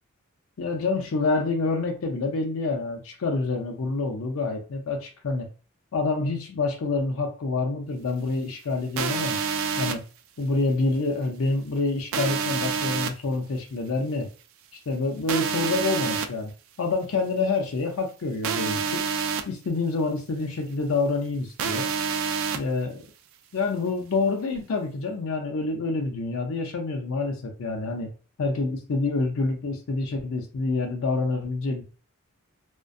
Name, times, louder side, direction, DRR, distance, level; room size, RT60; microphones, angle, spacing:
voice 1, 0.6-5.5 5.9-9.4 9.8-10.0 10.4-14.3 14.9-16.5 16.8-19.0 19.5-21.9 22.5-23.0 23.5-28.1 28.4-31.8, left 3 dB, 65° left, 3 dB, 0.5 m, -27 dB
sound 1, 9.0-9.9 12.1-13.1 15.3-16.3 18.4-19.4 21.6-22.6, right 6 dB, 60° right, 0.3 m, -27 dB
2.5 x 2.1 x 2.4 m, 0.36 s
head